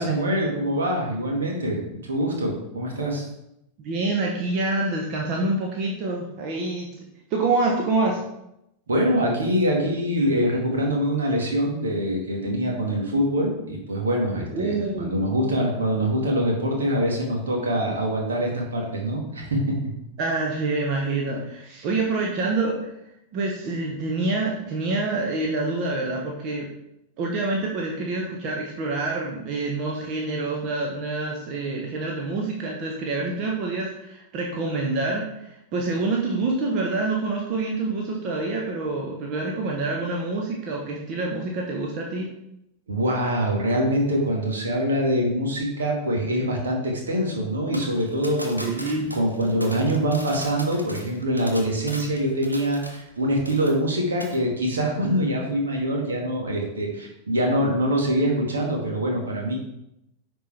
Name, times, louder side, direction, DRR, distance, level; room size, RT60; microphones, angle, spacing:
voice 1, 0.0-3.3 8.9-19.9 42.9-59.5, equal, 70° right, 0 dB, 2.0 m, -24 dB
voice 2, 3.8-6.9 7.3-8.2 14.5-15.2 20.2-22.9 23.3-26.7 27.2-42.3 48.6-49.1, right 3 dB, 40° right, -1 dB, 1.2 m, -26 dB
sound 1, 47.7-53.2 53.5-53.9 54.2-54.4, equal, 85° right, 1.0 m, -39 dB
10.0 x 4.5 x 3.5 m, 0.83 s
figure-of-eight pair, 90°, 0 cm